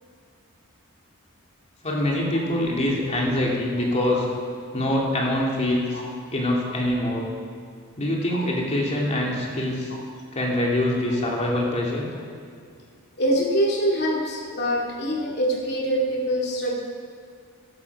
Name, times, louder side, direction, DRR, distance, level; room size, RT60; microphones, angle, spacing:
voice 1, 1.8-4.3 4.7-6.0 6.3-7.3 8.0-9.9 10.3-12.1, left 1 dB, 30° left, -3 dB, 2.5 m, -24 dB
voice 2, 13.2-16.8, equal, 50° left, -1 dB, 2.4 m, -24 dB
15.0 x 11.0 x 4.8 m, 2.2 s
head